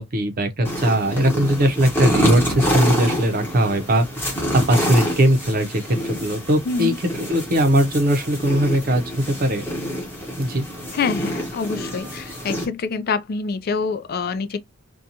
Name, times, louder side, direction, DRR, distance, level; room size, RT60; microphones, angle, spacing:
voice 1, 0.0-6.9 7.3-9.6 10.4-10.7, right 1 dB, 45° right, 0.6 m, -20 dB
sound 1, 0.6-12.6, equal, 10° left, 1.0 m, -27 dB
voice 2, 6.7-7.0 10.9-14.6, left 5 dB, 50° left, 0.4 m, -26 dB
2.5 x 2.2 x 2.7 m
head